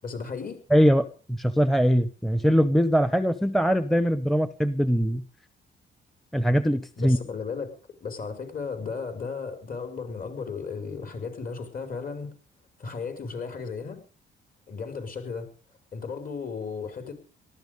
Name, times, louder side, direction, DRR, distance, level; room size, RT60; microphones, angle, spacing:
voice 1, 0.0-0.6 7.0-7.7 8.0-12.3 12.8-14.0 14.7-15.5 15.9-17.1, left 5 dB, 45° left, 8 dB, 5.6 m, -35 dB
voice 2, 0.7-5.2 6.3-7.2, equal, ahead, 13 dB, 0.9 m, -22 dB
18.5 x 13.5 x 5.3 m, 0.38 s
cardioid pair, 90°, 20 cm